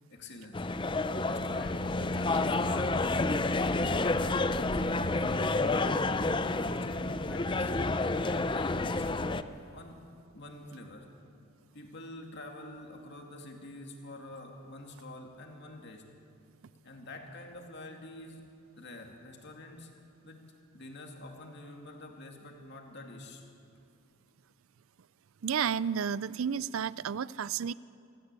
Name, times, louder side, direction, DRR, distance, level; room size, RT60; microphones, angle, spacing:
voice 1, 0.1-0.7 1.3-6.5 6.8-7.7 8.2-9.3 9.7-10.1 10.3-11.1 11.7-16.0 16.8-18.5 18.8-19.9 20.2-20.4 20.7-23.5, left 2 dB, 50° left, 2 dB, 2.4 m, -46 dB
sound 1, 0.5-9.4, left 2 dB, 20° left, 0.5 m, -29 dB
voice 2, 25.4-27.7, right 7 dB, 65° right, 19 dB, 0.4 m, -31 dB
25.5 x 14.0 x 8.3 m, 2.6 s
head